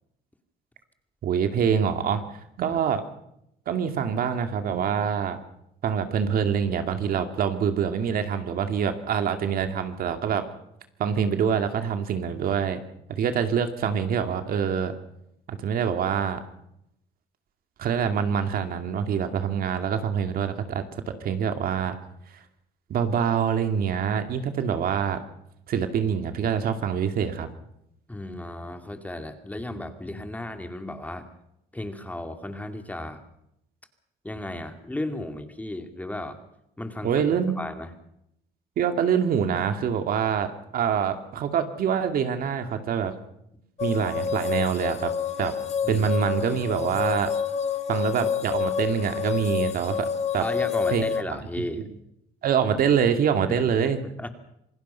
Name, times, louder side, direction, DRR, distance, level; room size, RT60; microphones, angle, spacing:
voice 1, 1.2-2.2 2.6-3.0 3.7-5.4 5.8-10.5 11.0-12.8 13.1-14.9 15.5-16.4 17.8-22.0 22.9-25.2 25.7-27.5 37.0-37.6 38.8-43.1 43.8-45.1 45.4-45.5 45.9-47.3 47.9-50.1 50.3-50.4 50.9-51.0 52.4-54.0, right 7 dB, 60° right, 7 dB, 2.3 m, -25 dB
voice 2, 28.1-31.3 31.7-33.2 34.2-36.4 36.8-37.1 37.6-37.9 45.8-46.1 50.4-51.8 53.5-54.3, left 1 dB, 10° left, 7 dB, 2.4 m, -34 dB
sound 1, 43.8-51.2, left 7 dB, 40° left, 1.6 m, -28 dB
27.0 x 18.5 x 5.7 m, 0.78 s
cardioid pair, 110°, 17 cm